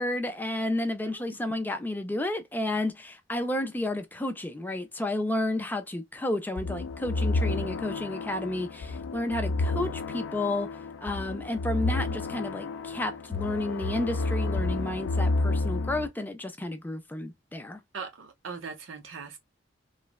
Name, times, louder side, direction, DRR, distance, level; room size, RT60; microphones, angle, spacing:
voice 1, 0.0-17.8, left 1 dB, 10° left, 0.4 m, -31 dB
sound 1, 6.6-16.1, left 2 dB, 85° left, 0.4 m, -30 dB
voice 2, 17.9-19.4, right 5 dB, 85° right, 0.7 m, -40 dB
3.1 x 2.1 x 2.3 m
head